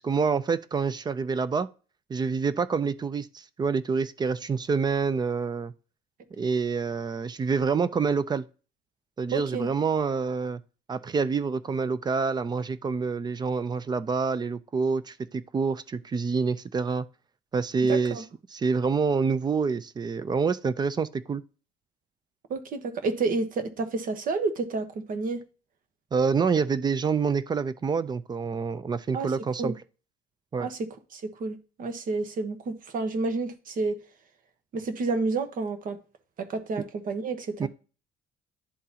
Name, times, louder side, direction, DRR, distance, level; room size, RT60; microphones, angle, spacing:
voice 1, 0.0-1.7 2.1-5.7 6.3-8.5 9.2-10.6 10.9-17.1 17.5-18.2 18.5-21.4 26.1-29.7 30.5-30.7 37.6-37.7, right 5 dB, 25° right, 0.4 m, -27 dB
voice 2, 9.3-9.7 17.9-18.2 22.5-25.4 29.1-29.3 29.6-29.7 30.6-34.0 34.7-36.0 36.4-37.7, right 3 dB, 55° right, 1.1 m, -30 dB
11.0 x 3.9 x 2.8 m
cardioid pair, 110°, 17 cm